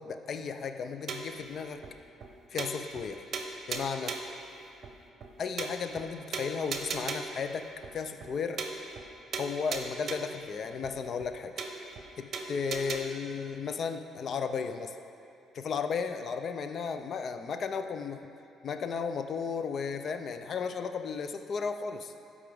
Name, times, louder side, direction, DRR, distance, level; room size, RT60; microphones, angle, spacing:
voice 1, 0.0-1.8 2.5-3.3 3.7-4.2 5.4-7.7 7.9-8.6 9.4-11.6 12.2-15.0 15.5-18.2 18.6-22.1, left 5 dB, 50° left, 8 dB, 0.4 m, -34 dB
sound 1, 1.1-1.4 1.8-1.9 2.2-2.3 2.6-3.1 3.3-4.4 4.8-4.9 5.2-5.3 5.6-6.1 6.3-7.4 7.8-7.9 8.2-8.3 8.6-9.1 9.3-10.4 10.8-10.9 11.2-11.3 11.6-12.1 12.3-13.0, right 4 dB, 50° right, 0.7 m, -37 dB
13.0 x 4.8 x 3.6 m, 2.6 s
cardioid pair, 120°, 0 cm